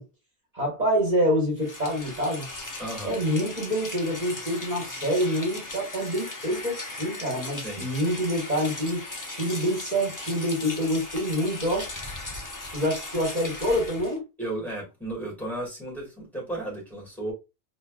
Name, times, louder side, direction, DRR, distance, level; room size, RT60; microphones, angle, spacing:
voice 1, 0.5-2.5 3.0-9.1 9.4-11.9 12.7-14.2, equal, 40° right, 1.6 m, -26 dB
Rain, 1.6-14.2, left 2 dB, 20° left, 0.6 m, -38 dB
voice 2, 2.8-3.2 7.6-7.9 14.4-17.3, right 1 dB, ahead, 2.1 m, -34 dB
4.2 x 2.8 x 2.3 m
omnidirectional pair, 1.1 m